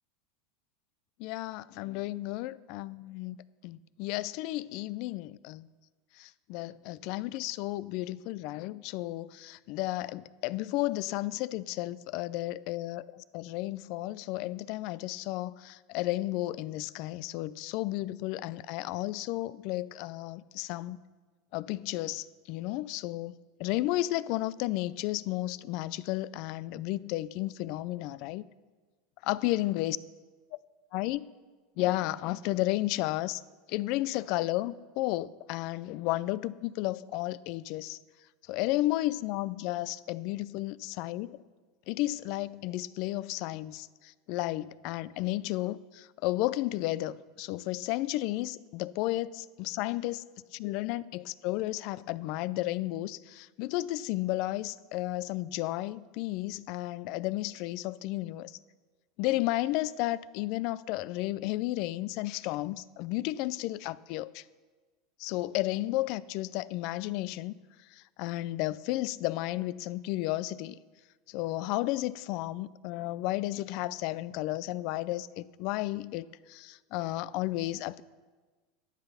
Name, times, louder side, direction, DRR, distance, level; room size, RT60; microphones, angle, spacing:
voice 1, 1.2-3.4 3.6-5.7 6.2-21.0 21.5-23.3 23.6-28.4 29.2-30.0 30.9-31.2 31.8-33.4 33.7-38.0 38.5-41.4 41.9-50.2 50.5-58.6 59.2-64.4 65.2-67.5 67.9-70.8 71.3-78.0, left 17 dB, 60° left, 0.4 m, -33 dB
11.5 x 8.9 x 5.6 m
supercardioid pair, 120°, 0 cm